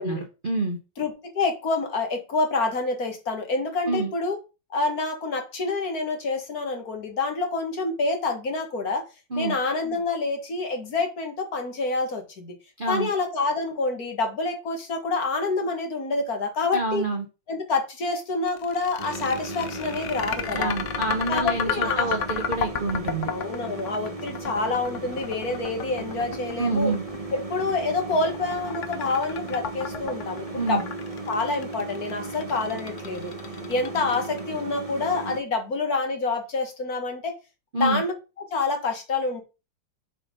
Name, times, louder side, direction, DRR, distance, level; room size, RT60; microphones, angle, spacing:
voice 1, 0.0-0.8 3.9-4.1 9.3-9.6 12.8-13.1 16.7-17.2 20.5-23.3 26.6-27.0 30.5-30.8 37.7-38.0, right 3 dB, 40° right, 0.8 m, -27 dB
voice 2, 1.0-4.4 4.7-9.0 9.4-12.5 12.9-17.0 17.5-20.7 21.3-22.1 23.3-26.9 27.5-30.8 31.3-33.3 33.7-37.3 37.8-38.1 38.5-39.4, left 3 dB, 45° left, 1.9 m, -27 dB
sound 1, 18.5-34.6, left 7 dB, 85° left, 0.6 m, -32 dB
sound 2, 19.0-35.4, right 3 dB, 20° right, 1.5 m, -36 dB
7.2 x 4.2 x 5.1 m
omnidirectional pair, 2.3 m